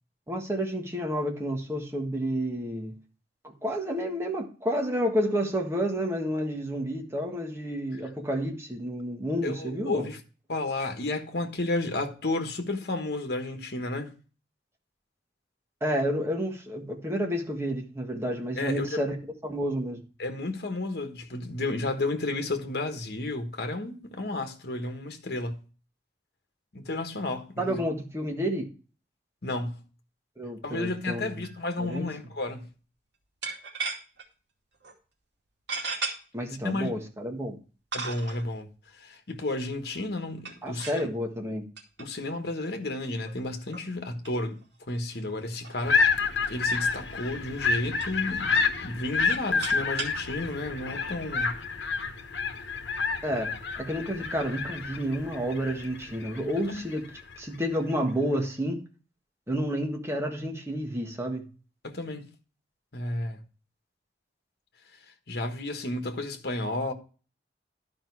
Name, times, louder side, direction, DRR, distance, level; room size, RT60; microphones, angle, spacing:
voice 1, 0.3-2.9 3.4-10.1 15.8-19.1 19.4-20.0 27.6-28.7 30.4-31.4 31.8-32.1 36.3-37.6 40.6-41.7 53.2-53.5 53.8-57.1 57.4-58.8 59.5-61.4, equal, 15° right, 1.6 m, -30 dB
voice 2, 9.4-10.2 10.5-14.1 18.6-19.0 20.2-25.6 26.7-27.8 29.4-29.8 30.6-32.6 36.6-36.9 37.9-38.7 39.0-41.1 42.0-46.1 46.5-51.6 56.7-56.8 61.8-62.3 62.9-63.4 65.3-66.9, left 2 dB, 60° left, 1.4 m, -32 dB
sound 1, 31.4-31.6 31.9-32.0 33.4-34.2 34.8-34.9 35.7-36.1 37.0-37.1 37.9-38.4 40.4-41.1 41.8-42.1 42.5-42.6 43.3-43.4 43.7-43.9 44.2-44.3 44.6-44.7 45.0-45.1 45.5-46.5 47.1-47.3 47.6-48.4 49.0-50.2, right 4 dB, 80° right, 2.4 m, -36 dB
sound 2, 45.8-57.4, left 5 dB, 80° left, 1.1 m, -29 dB
12.0 x 5.3 x 4.7 m
head